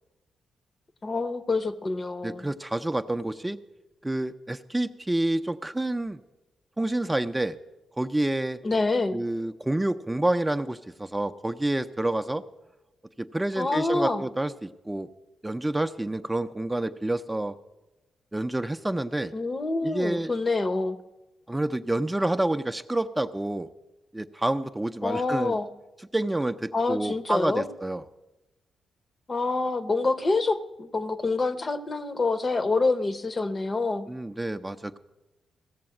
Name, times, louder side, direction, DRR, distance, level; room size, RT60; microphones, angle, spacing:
voice 1, 1.0-2.5 8.6-9.2 13.6-14.2 19.3-21.0 25.0-25.7 26.7-27.7 29.3-34.1, left 3 dB, 40° left, 10 dB, 0.7 m, -26 dB
voice 2, 2.2-3.6 4.0-6.2 6.8-7.6 8.0-8.6 9.1-12.4 13.2-15.1 15.4-17.5 18.3-19.3 19.8-20.3 21.5-23.7 24.1-25.6 26.1-28.0 34.1-35.0, right 1 dB, 15° right, 8 dB, 0.5 m, -28 dB
15.5 x 6.9 x 7.6 m, 1.0 s
supercardioid pair, 50°, 0 cm